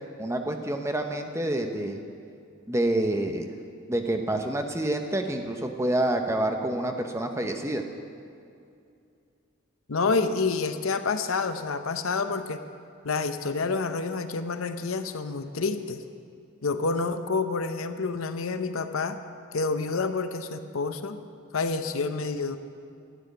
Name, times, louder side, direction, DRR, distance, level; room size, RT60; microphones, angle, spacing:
voice 1, 0.2-2.0 2.7-3.5 3.9-7.8, right 1 dB, 15° right, 5 dB, 0.8 m, -27 dB
voice 2, 9.9-12.6 13.0-16.0 16.6-19.2 19.5-21.2 21.5-22.6, left 4 dB, 90° left, 9 dB, 0.7 m, -28 dB
12.5 x 7.6 x 9.2 m, 2.5 s
head